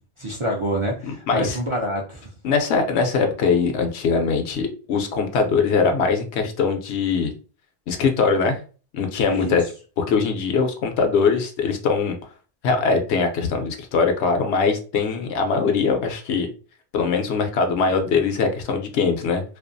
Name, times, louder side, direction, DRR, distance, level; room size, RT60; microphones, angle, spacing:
voice 1, 0.2-2.3 9.3-9.6, equal, 50° right, -4 dB, 0.4 m, -26 dB
voice 2, 1.1-1.6 2.4-7.3 7.9-8.6 8.9-9.6 10.0-12.1 12.6-16.5 16.9-19.4, left 5 dB, 80° left, 5 dB, 0.9 m, -21 dB
2.4 x 2.3 x 2.5 m, 0.37 s
omnidirectional pair, 1.1 m